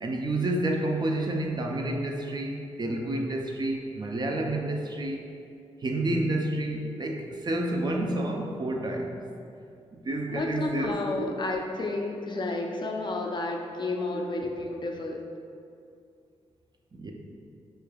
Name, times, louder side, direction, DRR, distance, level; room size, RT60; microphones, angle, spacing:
voice 1, 0.0-5.2 5.8-9.2 10.0-11.3 14.1-14.2 16.9-17.1, right 1 dB, 35° right, 1 dB, 0.4 m, -29 dB
voice 2, 10.3-15.2, left 2 dB, 40° left, 1 dB, 0.4 m, -31 dB
4.6 x 3.2 x 2.2 m, 2.4 s
cardioid pair, 75°, 12 cm